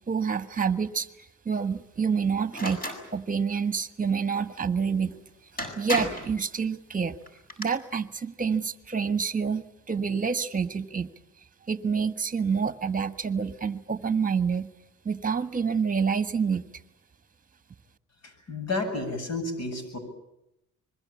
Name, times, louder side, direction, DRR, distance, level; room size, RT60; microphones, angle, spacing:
voice 1, 0.1-2.8 3.1-5.1 5.7-7.2 7.6-11.1 11.7-14.7 15.0-16.6, right 6 dB, 25° right, 11 dB, 1.5 m, -27 dB
sound 1, 2.5-3.0 5.1-5.2 5.6-6.3 7.3-7.7, equal, 30° left, 7.3 m, -32 dB
voice 2, 18.5-20.0, left 2 dB, 60° left, 8 dB, 7.8 m, -31 dB
25.5 x 22.0 x 8.6 m, 0.85 s
cardioid pair, 90°, 30 cm